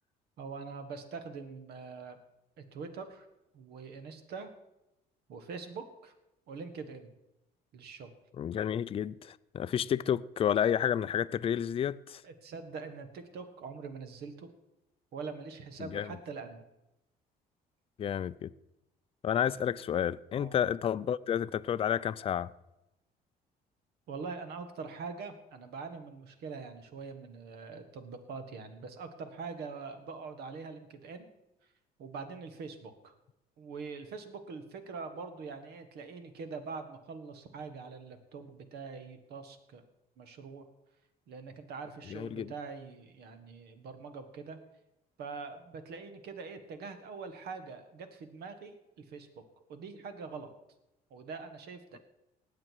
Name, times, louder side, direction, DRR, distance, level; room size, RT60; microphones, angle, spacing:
voice 1, 0.4-2.2 2.6-3.3 3.5-4.5 5.3-6.1 6.5-7.1 7.7-8.1 12.2-14.5 15.1-16.6 20.3-20.6 24.1-31.3 32.0-33.1 33.6-39.8 40.2-40.7 41.3-44.6 45.2-49.3 49.7-50.5 51.1-52.0, right 4 dB, 70° right, 1.6 m, -43 dB
voice 2, 8.4-12.2 15.8-16.1 18.0-18.5 19.2-22.5 42.1-42.5, left 9 dB, 35° left, 0.4 m, -30 dB
19.0 x 7.7 x 4.7 m
cardioid pair, 110°, 17 cm